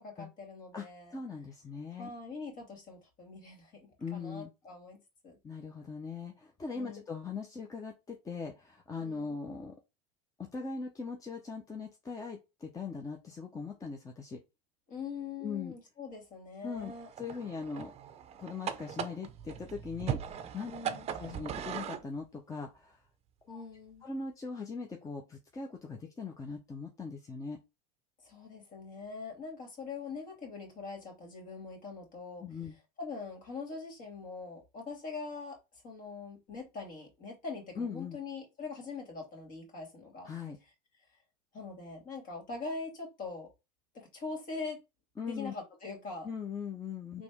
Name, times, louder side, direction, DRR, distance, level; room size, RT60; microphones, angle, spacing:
voice 1, 0.0-1.1 2.0-5.4 6.7-7.0 9.0-9.4 14.9-17.1 20.7-21.1 23.5-24.0 28.2-32.4 33.0-40.3 41.5-43.5 43.9-44.8 45.2-46.3 47.1-47.2, left 4 dB, 40° left, 2 dB, 2.5 m, -43 dB
voice 2, 1.1-2.1 4.0-4.5 5.4-9.8 10.4-14.4 15.4-15.7 16.6-17.9 18.4-20.7 21.2-23.0 23.5-23.6 24.0-27.6 32.4-32.8 37.8-38.2 40.3-40.6 45.2-45.5 46.2-47.2, left 5 dB, 15° left, 2 dB, 0.8 m, -40 dB
sound 1, 16.8-22.1, right 9 dB, 30° right, 0.6 m, -39 dB
4.3 x 3.0 x 3.6 m, 0.25 s
supercardioid pair, 110°, 20 cm